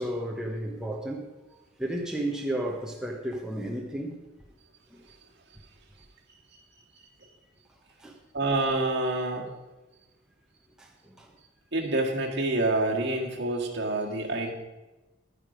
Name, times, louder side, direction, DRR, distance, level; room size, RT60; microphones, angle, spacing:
voice 1, 0.0-1.3 1.8-4.2 4.9-5.1 8.0-8.2 10.8-11.3, right 1 dB, 5° right, -1 dB, 1.0 m, -33 dB
voice 2, 8.3-9.5 11.7-14.5, right 2 dB, 55° right, 0 dB, 1.9 m, -27 dB
11.5 x 9.7 x 5.1 m, 1.1 s
head